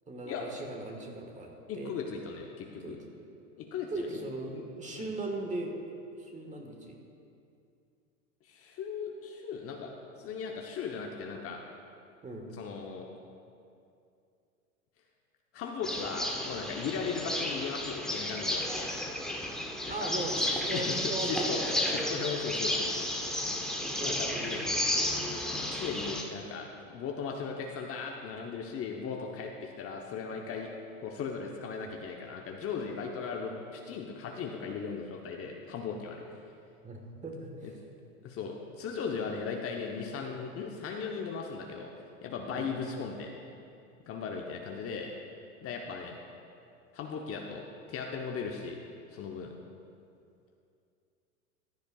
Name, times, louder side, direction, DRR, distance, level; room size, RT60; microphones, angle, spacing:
voice 1, 0.1-1.9 2.8-3.0 3.9-5.7 6.2-7.0 12.2-12.5 19.9-22.1 23.8-24.8 36.8-37.5 42.5-42.7, right 2 dB, 15° right, 2 dB, 1.4 m, -38 dB
voice 2, 1.7-3.0 3.6-4.2 4.5-4.6 4.9-5.1 8.4-11.6 12.5-13.0 15.5-18.7 19.9-20.1 20.7-23.1 24.0-24.6 25.7-30.7 31.0-36.2 37.6-37.7 38.2-41.9 42.2-43.3 44.1-45.1 45.6-46.2 46.9-48.8 49.1-49.5, left 5 dB, 30° left, 1 dB, 0.9 m, -37 dB
sound 1, 15.8-26.2, left 1 dB, ahead, 0.9 m, -32 dB
15.5 x 10.5 x 2.3 m, 2.5 s
hypercardioid pair, 100°, 44 cm